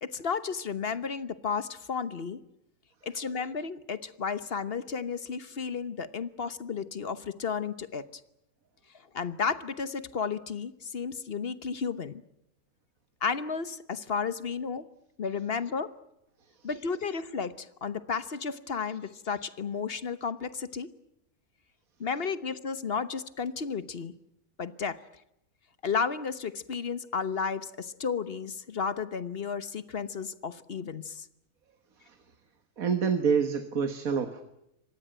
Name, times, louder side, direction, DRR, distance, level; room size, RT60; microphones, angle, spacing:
voice 1, 0.0-2.4 3.0-8.1 9.1-12.2 13.2-14.9 15.2-15.9 16.6-20.9 22.0-24.1 24.6-25.0 25.8-31.3, left 5 dB, 45° left, 14 dB, 1.2 m, -33 dB
voice 2, 32.8-34.4, right 6 dB, 70° right, 9 dB, 1.8 m, -27 dB
25.5 x 19.5 x 8.9 m, 0.81 s
omnidirectional pair, 1.5 m